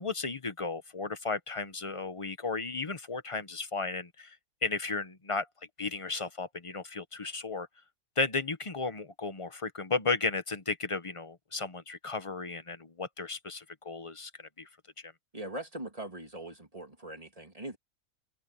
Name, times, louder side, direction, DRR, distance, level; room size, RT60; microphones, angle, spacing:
voice 1, 0.0-5.5 5.8-7.7 8.2-14.7 15.0-15.1, left 4 dB, 25° left, 0.9 m, -34 dB
voice 2, 15.3-17.8, right 1 dB, 25° right, 2.9 m, -41 dB
omnidirectional pair, 1.5 m